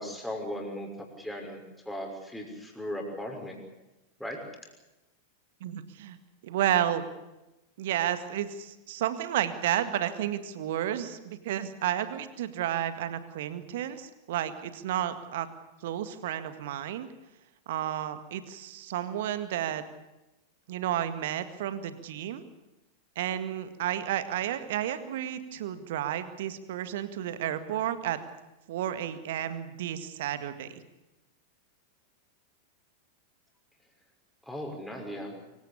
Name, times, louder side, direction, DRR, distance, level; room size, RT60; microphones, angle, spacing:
voice 1, 0.0-3.6 4.2-4.4 34.5-35.3, equal, 5° left, 1 dB, 6.1 m, -37 dB
voice 2, 5.6-6.2 6.4-7.0 7.8-15.5 15.8-17.1 17.7-19.8 20.7-22.4 23.2-28.2 28.7-30.7, right 11 dB, 55° right, 12 dB, 1.9 m, -31 dB
25.0 x 16.5 x 8.5 m, 1.0 s
figure-of-eight pair, 90°, 0 cm